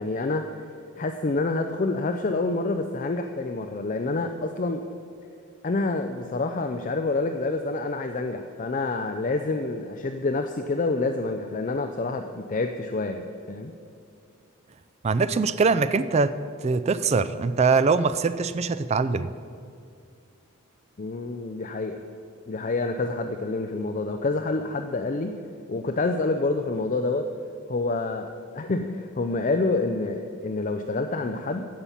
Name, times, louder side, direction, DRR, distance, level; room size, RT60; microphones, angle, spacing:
voice 1, 0.0-4.8 5.6-13.7 21.0-22.0 22.5-25.3 25.7-27.2 27.7-28.3 28.5-31.7, left 3 dB, 40° left, 6 dB, 0.4 m, -27 dB
voice 2, 15.0-19.3, right 4 dB, 30° right, 12 dB, 0.3 m, -23 dB
15.5 x 5.6 x 7.1 m, 2.4 s
head